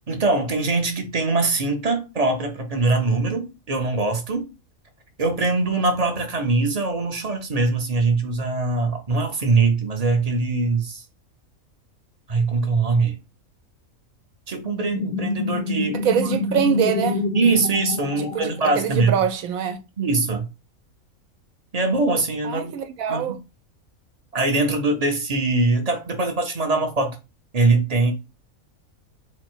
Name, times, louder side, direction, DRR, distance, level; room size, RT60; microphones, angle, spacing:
voice 1, 0.1-4.5 5.2-11.0 12.3-13.2 14.5-16.3 17.3-19.1 20.0-20.5 21.7-22.7 23.1-23.4 24.3-27.2 27.5-28.1, right 3 dB, 40° right, 0.6 m, -22 dB
sound 1, 14.6-19.1, left 3 dB, 60° left, 0.7 m, -27 dB
voice 2, 15.9-17.2 18.2-19.8 22.4-23.4, right 8 dB, 80° right, 1.1 m, -24 dB
4.1 x 2.1 x 4.4 m
omnidirectional pair, 1.5 m